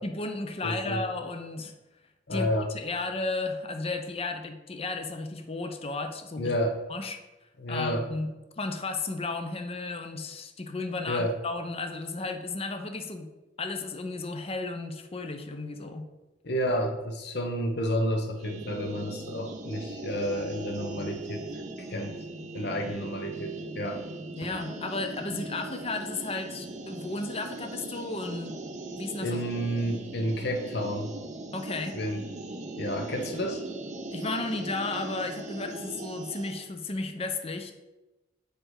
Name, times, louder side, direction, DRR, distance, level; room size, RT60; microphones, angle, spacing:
voice 1, 0.0-1.7 2.3-6.5 6.9-7.2 7.7-13.3 13.6-16.1 24.3-28.6 28.9-29.4 31.5-32.0 34.1-37.7, left 3 dB, 35° left, 6 dB, 0.6 m, -34 dB
voice 2, 0.6-1.0 2.3-2.7 6.4-6.8 7.6-8.1 11.1-11.3 16.4-21.5 21.9-22.2 22.5-24.0 24.4-24.5 29.2-31.1 31.9-32.3 32.8-33.6, equal, 60° left, 4 dB, 0.9 m, -30 dB
sound 1, 18.4-36.6, right 2 dB, 40° right, 0.7 m, -40 dB
6.8 x 5.0 x 4.7 m, 1.1 s
head